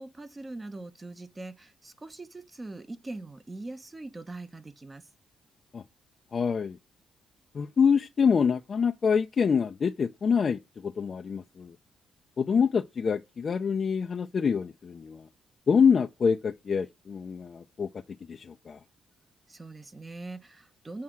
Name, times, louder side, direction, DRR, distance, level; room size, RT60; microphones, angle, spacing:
voice 1, 0.0-5.1 19.5-21.0, right 2 dB, 25° right, 1.1 m, -42 dB
voice 2, 6.3-6.8 7.5-11.7 12.4-15.3 15.7-17.9 18.3-18.8, left 6 dB, 50° left, 0.6 m, -26 dB
7.3 x 3.7 x 6.2 m
supercardioid pair, 70°, 0 cm